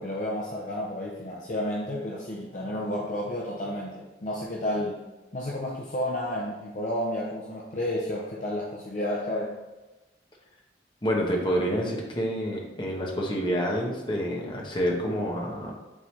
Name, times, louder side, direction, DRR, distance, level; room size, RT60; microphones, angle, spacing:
voice 1, 0.0-5.0 5.3-9.6, left 1 dB, 45° left, -3 dB, 0.7 m, -31 dB
voice 2, 11.0-15.7, equal, 25° left, -1 dB, 1.1 m, -28 dB
8.9 x 3.9 x 3.2 m, 1.1 s
head